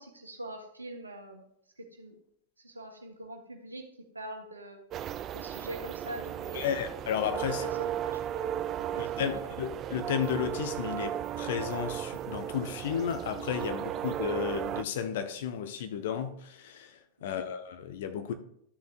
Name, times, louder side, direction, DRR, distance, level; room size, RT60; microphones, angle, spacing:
voice 1, 0.0-1.4 1.8-2.1 2.6-3.9 4.1-4.8 5.3-6.8 7.6-9.5 17.3-17.5, right 1 dB, 80° right, 1.2 m, -44 dB
sound 1, 4.9-14.8, right 11 dB, 30° right, 0.3 m, -35 dB
voice 2, 6.5-7.7 9.0-18.3, left 8 dB, 55° left, 0.9 m, -33 dB
12.5 x 6.5 x 2.5 m
figure-of-eight pair, 90°, 0 cm